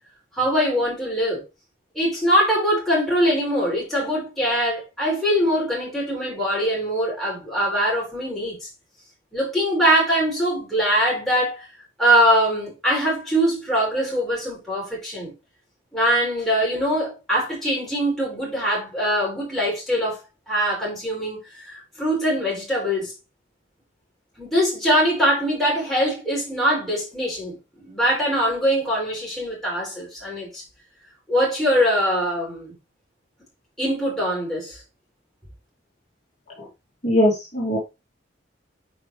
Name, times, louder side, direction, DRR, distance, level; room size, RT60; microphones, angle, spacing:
voice 1, 0.4-1.4 2.0-8.7 9.3-11.7 12.0-15.3 15.9-20.2 20.5-23.1 24.4-30.6 31.3-32.7 33.8-34.8, equal, ahead, 5.3 m, -22 dB
voice 2, 37.0-37.8, left 1 dB, 35° left, 2.9 m, -20 dB
9.4 x 5.1 x 3.4 m
head